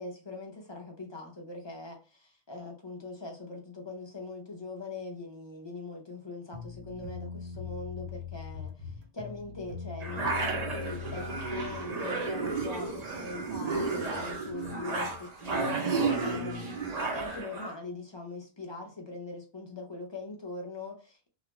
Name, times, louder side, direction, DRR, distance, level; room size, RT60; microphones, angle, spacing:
voice 1, 0.0-21.3, left 3 dB, 35° left, 0.5 m, -42 dB
sound 1, 6.5-11.8, left 7 dB, 85° right, 1.0 m, -41 dB
sound 2, 10.0-17.7, right 3 dB, 45° right, 0.7 m, -32 dB
2.4 x 2.2 x 2.9 m
omnidirectional pair, 1.1 m